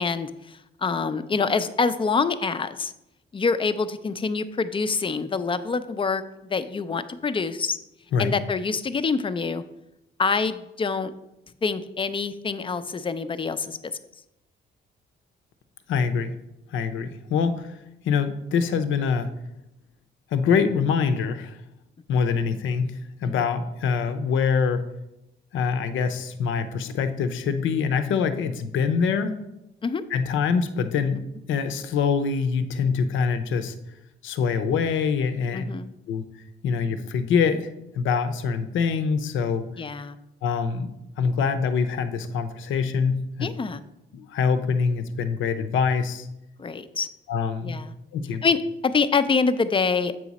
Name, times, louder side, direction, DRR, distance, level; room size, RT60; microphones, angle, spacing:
voice 1, 0.0-2.9 3.3-7.8 8.2-9.6 10.2-11.1 11.6-13.8 23.2-23.4 29.8-30.0 35.5-35.9 39.8-40.2 43.4-43.8 46.6-47.1 47.6-47.9 48.4-50.2, left 4 dB, 25° left, 12 dB, 0.4 m, -26 dB
voice 2, 15.9-16.4 16.7-17.8 18.0-19.3 20.3-21.6 22.1-24.8 25.5-29.3 30.1-31.2 31.5-33.7 34.2-35.6 36.1-36.2 36.6-37.7 37.9-39.7 40.4-40.9 41.2-43.5 44.1-46.3 47.3-47.8 48.1-48.4, left 6 dB, 75° left, 9 dB, 0.6 m, -24 dB
7.6 x 4.9 x 4.1 m, 0.89 s
cardioid pair, 90°, 20 cm